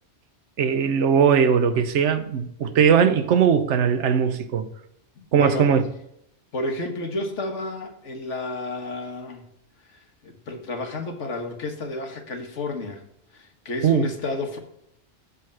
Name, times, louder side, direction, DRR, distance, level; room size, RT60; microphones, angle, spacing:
voice 1, 0.6-4.7 5.3-5.8 13.8-14.1, right 7 dB, 80° right, 1.0 m, -19 dB
voice 2, 5.2-5.7 6.5-9.5 9.9-13.0 13.3-14.6, left 2 dB, 80° left, 1.6 m, -31 dB
7.0 x 4.9 x 6.1 m
omnidirectional pair, 1.2 m